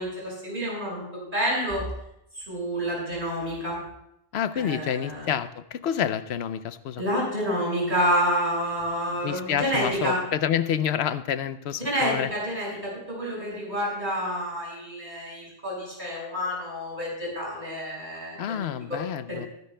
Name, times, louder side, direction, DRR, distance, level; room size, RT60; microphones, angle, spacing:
voice 1, 0.0-1.8 2.4-3.8 4.6-5.3 7.0-10.2 11.8-18.7 19.3-19.5, equal, 50° right, -4 dB, 5.6 m, -29 dB
voice 2, 4.3-7.0 9.2-12.3 18.4-19.5, left 9 dB, 85° left, 13 dB, 0.9 m, -28 dB
21.5 x 10.5 x 2.2 m, 0.78 s
omnidirectional pair, 1.1 m